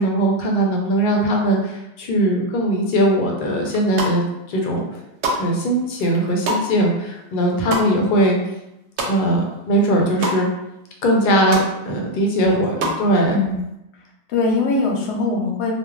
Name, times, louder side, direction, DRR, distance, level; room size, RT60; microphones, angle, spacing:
voice 1, 0.0-4.2 4.5-4.9 5.4-8.4 9.1-10.5 11.0-13.3, right 1 dB, 55° left, 0 dB, 0.7 m, -19 dB
sound 1, 3.7-4.4 4.8-9.5 9.8-10.4 10.8-10.9 11.1-11.7 12.1-13.0, right 2 dB, 90° right, 0.9 m, -27 dB
voice 2, 12.4-12.9 13.3-13.6 14.3-15.7, left 3 dB, 90° left, 0 dB, 0.9 m, -22 dB
2.3 x 2.1 x 3.1 m, 0.89 s
omnidirectional pair, 1.1 m